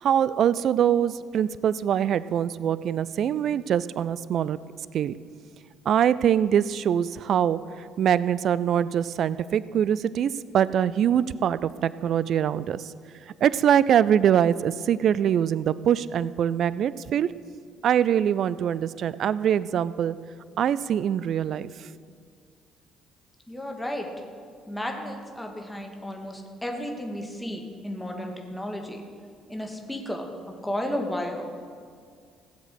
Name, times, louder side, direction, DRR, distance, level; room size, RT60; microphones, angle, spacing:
voice 1, 0.0-4.6 4.9-5.1 5.9-12.9 13.4-17.3 17.8-20.2 20.6-21.9, right 9 dB, 55° right, 17 dB, 0.3 m, -23 dB
voice 2, 23.5-24.1 24.7-29.0 29.5-31.5, left 1 dB, 10° left, 2 dB, 2.0 m, -33 dB
16.5 x 7.4 x 6.5 m, 2.2 s
figure-of-eight pair, 50°, 0 cm